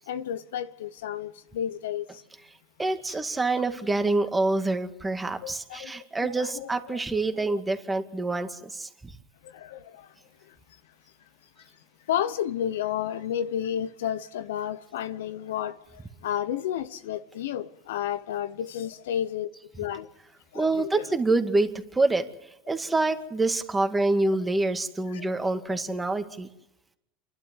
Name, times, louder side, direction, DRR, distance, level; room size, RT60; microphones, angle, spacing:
voice 1, 0.1-2.2 3.1-3.2 5.4-5.9 6.2-7.0 7.3-7.6 9.4-10.1 12.1-19.5 19.8-20.1 20.5-21.1 25.1-25.3 25.7-25.9, left 10 dB, 85° left, 1.0 m, -32 dB
voice 2, 2.8-9.1 20.5-22.3 22.7-26.5, right 2 dB, 15° right, 2.1 m, -26 dB
28.5 x 12.0 x 8.3 m
supercardioid pair, 105°, 0 cm